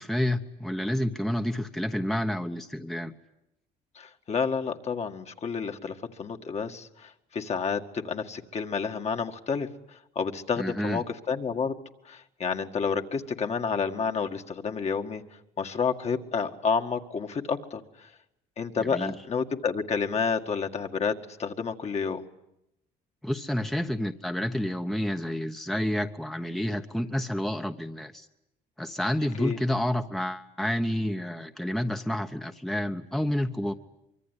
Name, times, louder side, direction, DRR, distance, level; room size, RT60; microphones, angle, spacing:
voice 1, 0.0-3.1 10.6-11.0 18.7-19.1 23.2-28.3 28.8-33.7, left 1 dB, ahead, 6 dB, 1.1 m, -29 dB
voice 2, 4.0-11.8 12.1-15.2 15.6-17.8 18.6-22.2 29.4-29.6, left 5 dB, 40° left, 5 dB, 2.0 m, -30 dB
24.5 x 24.0 x 9.9 m, 0.85 s
cardioid pair, 110°, 17 cm